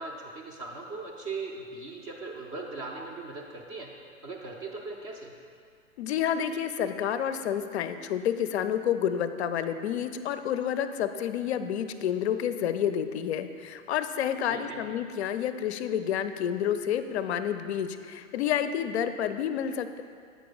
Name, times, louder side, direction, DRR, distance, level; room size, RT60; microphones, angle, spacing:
voice 1, 0.0-3.9 4.2-5.3 14.5-14.8, right 3 dB, 20° right, 0 dB, 0.4 m, -39 dB
voice 2, 6.0-20.0, left 9 dB, 55° left, 11 dB, 0.5 m, -29 dB
8.2 x 5.0 x 3.9 m, 2.2 s
figure-of-eight pair, 110°, 41 cm